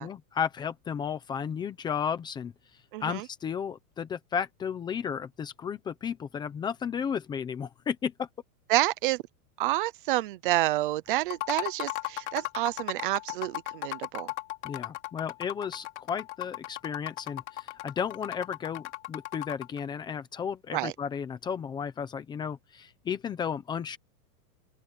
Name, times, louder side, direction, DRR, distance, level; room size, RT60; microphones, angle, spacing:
voice 1, 0.0-2.5 3.0-8.3 14.6-24.0, left 7 dB, 10° left, 0.8 m, -33 dB
voice 2, 2.9-3.3 8.7-9.2 9.6-14.3 20.7-20.9, right 17 dB, 35° right, 0.8 m, -29 dB
sound 1, 11.2-19.8, left 19 dB, 50° left, 3.1 m, -36 dB
supercardioid pair, 175°, 43 cm